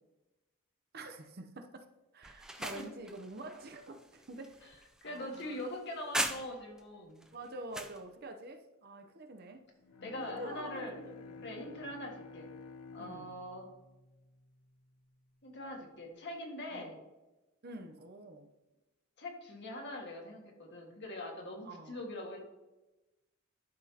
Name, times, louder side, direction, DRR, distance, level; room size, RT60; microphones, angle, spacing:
voice 1, 0.9-1.8 2.1-4.8 5.0-5.7 7.3-9.7 10.1-11.9 13.0-13.3 16.7-17.0 17.6-18.5 21.6-22.0, right 1 dB, 45° right, 6 dB, 0.7 m, -47 dB
sound 1, 2.2-6.8 7.2-8.0, right 1 dB, 5° right, 0.3 m, -40 dB
voice 2, 2.5-2.8 4.6-4.7 5.0-7.2 10.0-11.1 11.4-12.5 12.9-13.7 15.4-17.0 19.2-22.4, left 1 dB, 50° left, 0 dB, 1.7 m, -43 dB
Bowed string instrument, 9.8-15.2, left 4 dB, 90° left, 0.6 m, -52 dB
11.5 x 6.0 x 2.8 m, 1.0 s
head